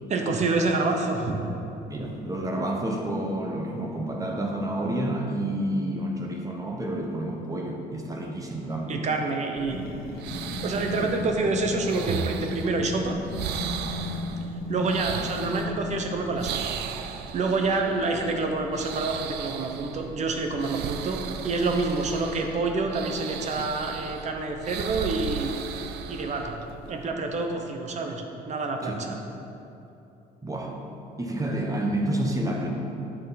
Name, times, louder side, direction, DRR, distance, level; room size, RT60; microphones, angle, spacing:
voice 1, 0.1-1.4 8.9-9.9 10.6-13.2 14.7-25.5 26.1-26.6 26.9-29.2, right 3 dB, 45° right, 3 dB, 1.0 m, -27 dB
voice 2, 1.9-9.0 11.0-11.1 28.8-29.0 30.4-30.8 31.2-32.7, right 1 dB, 20° right, 1 dB, 1.1 m, -29 dB
sound 1, 9.5-27.1, right 7 dB, 80° right, 0.5 m, -36 dB
sound 2, 9.7-16.5, left 3 dB, 65° left, 1.1 m, -35 dB
9.1 x 6.4 x 4.2 m, 2.9 s
cardioid pair, 110°, 17 cm